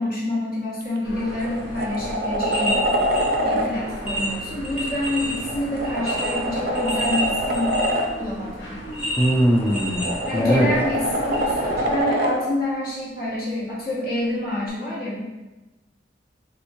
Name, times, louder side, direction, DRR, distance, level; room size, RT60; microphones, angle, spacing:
voice 1, 0.0-2.9 3.4-7.8 8.2-8.9 10.3-15.2, left 1 dB, 55° left, -6 dB, 1.0 m, -27 dB
sound 1, 0.8-1.0 1.4-3.7 5.3-8.1 9.6-12.4 14.7-14.8, equal, 55° right, 0.4 m, -25 dB
sound 2, 1.0-12.0, equal, 85° left, 0.7 m, -36 dB
sound 3, 2.4-3.3 3.7-3.8 4.1-5.4 5.8-8.1 8.9-10.7 11.3-11.4, equal, 30° left, 0.8 m, -29 dB
voice 2, 9.2-10.7, equal, 10° left, 0 dB, 0.3 m, -20 dB
3.4 x 2.8 x 2.6 m, 1.1 s
head